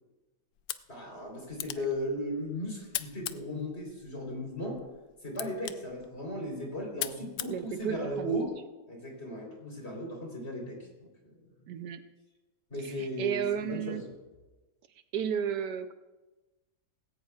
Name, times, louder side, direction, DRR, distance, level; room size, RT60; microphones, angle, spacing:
sound 1, 0.5-8.5, left 12 dB, 70° left, 1.0 m, -42 dB
voice 1, 0.9-4.8 5.2-8.5 8.9-11.4 12.7-14.0, equal, 35° left, 0 dB, 4.0 m, -36 dB
voice 2, 7.5-8.5 11.7-12.0 12.8-14.0 15.1-15.9, right 8 dB, 75° right, 9 dB, 1.2 m, -33 dB
19.0 x 17.0 x 2.4 m, 1.1 s
omnidirectional pair, 1.9 m